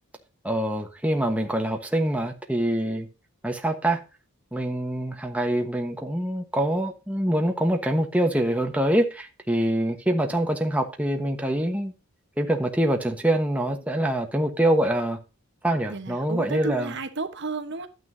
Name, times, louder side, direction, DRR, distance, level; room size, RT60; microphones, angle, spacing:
voice 1, 0.4-3.1 3.4-4.0 4.5-11.9 12.4-15.2 15.6-16.9, right 1 dB, 5° right, 1.2 m, -25 dB
voice 2, 15.9-17.9, right 3 dB, 50° right, 1.1 m, -32 dB
11.5 x 9.4 x 2.7 m
head